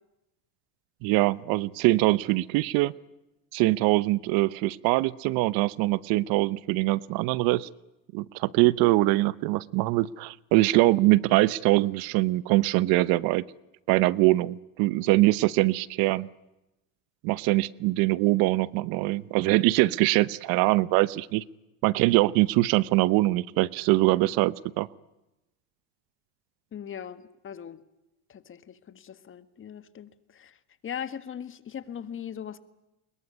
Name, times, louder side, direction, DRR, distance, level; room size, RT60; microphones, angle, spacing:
voice 1, 1.0-2.9 3.5-7.7 8.1-13.4 13.9-16.3 17.2-21.4 21.8-24.9, right 19 dB, 65° right, 20 dB, 0.9 m, -23 dB
voice 2, 26.7-27.8 28.3-32.6, left 8 dB, 30° left, 13 dB, 1.7 m, -40 dB
24.0 x 22.0 x 9.7 m, 0.94 s
supercardioid pair, 115°, 39 cm